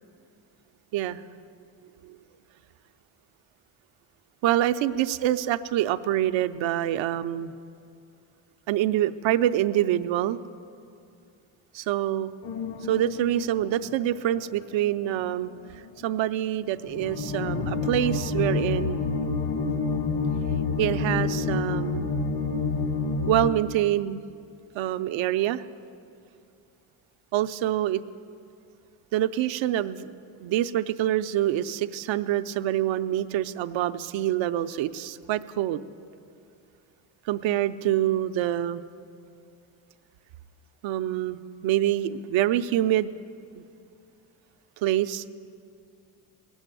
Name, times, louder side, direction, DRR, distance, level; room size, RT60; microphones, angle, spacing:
voice 1, 0.9-1.2 2.0-2.2 4.4-7.5 8.7-10.4 11.7-12.3 12.9-15.5 16.0-19.0 20.8-22.1 23.3-24.2 24.7-25.6 27.3-28.0 29.1-30.1 30.4-35.8 37.3-38.8 40.8-43.1 43.5-43.6 44.8-45.3, right 12 dB, 70° right, 12 dB, 0.7 m, -26 dB
sound 1, 12.4-14.8 15.0-15.2 15.8-15.9 16.8-23.5, left 4 dB, 65° left, 1.6 m, -28 dB
18.5 x 7.2 x 9.1 m, 2.5 s
cardioid pair, 85°, 48 cm